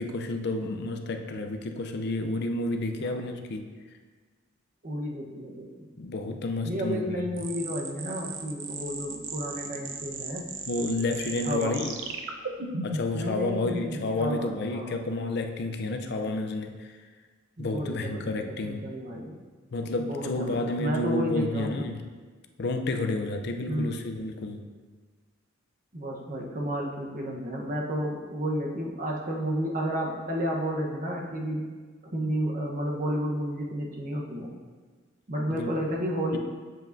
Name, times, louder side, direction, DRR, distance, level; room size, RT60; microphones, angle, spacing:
voice 1, 0.0-3.7 6.0-7.2 10.7-12.0 12.8-16.9 17.6-18.9 19.7-22.1 22.6-24.7 35.5-35.7, left 2 dB, 60° left, 5 dB, 0.5 m, -30 dB
voice 2, 4.8-5.9 6.6-10.5 11.4-11.8 13.1-14.9 17.6-18.4 18.6-19.3 20.0-21.9 23.7-24.0 25.9-31.7 32.1-34.5 35.3-36.4, equal, 45° right, -1 dB, 1.0 m, -32 dB
sound 1, 7.4-13.2, right 4 dB, 90° right, 0.7 m, -36 dB
7.6 x 7.3 x 2.6 m, 1.4 s
head